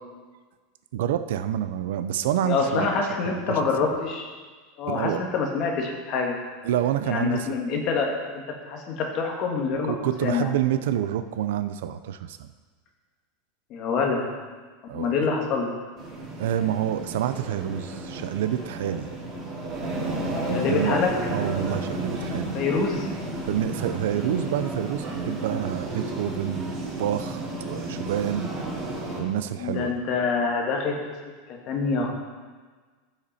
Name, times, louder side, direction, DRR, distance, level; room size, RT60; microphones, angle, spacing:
voice 1, 0.9-2.9 3.2-3.6 4.9-5.2 6.6-7.5 9.9-12.5 14.9-15.1 16.4-19.1 20.5-21.0 21.2-22.5 23.5-28.5 29.2-30.0, right 10 dB, 80° right, 11 dB, 0.6 m, -28 dB
voice 2, 2.4-4.3 4.8-6.3 7.0-9.9 10.2-10.5 13.7-14.3 14.9-15.7 20.5-21.1 22.5-23.1 29.6-31.0 31.5-32.1, left 4 dB, 40° left, 1 dB, 1.7 m, -26 dB
sound 1, 16.0-29.2, right 2 dB, 30° right, 2.4 m, -32 dB
14.0 x 5.9 x 4.2 m, 1.4 s
supercardioid pair, 160°, 0 cm